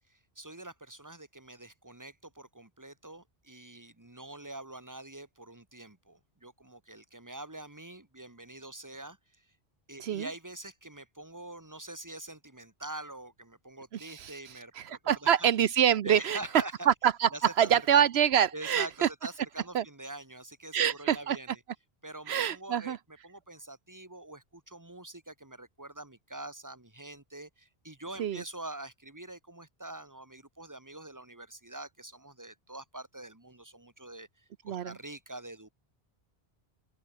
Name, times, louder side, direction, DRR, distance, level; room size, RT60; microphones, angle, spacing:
voice 1, 0.0-9.5 9.9-15.5 16.0-16.9 17.3-18.1 18.5-21.6 22.0-35.7, right 2 dB, 15° right, 2.2 m, -45 dB
voice 2, 13.9-14.3 14.8-16.4 16.9-17.3 17.6-19.1 19.7-19.8 20.7-21.4 22.3-23.0 28.2-28.4 34.7-34.9, right 9 dB, 80° right, 1.0 m, -26 dB
open air
omnidirectional pair, 1.1 m